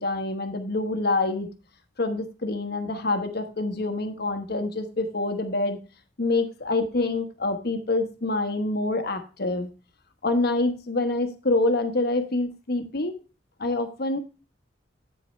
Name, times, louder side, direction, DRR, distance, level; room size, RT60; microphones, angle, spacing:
voice 1, 0.0-1.5 2.0-5.8 6.2-9.7 10.2-13.1 13.6-14.2, left 2 dB, 60° left, 8 dB, 1.1 m, -26 dB
8.4 x 8.4 x 3.1 m, 0.31 s
head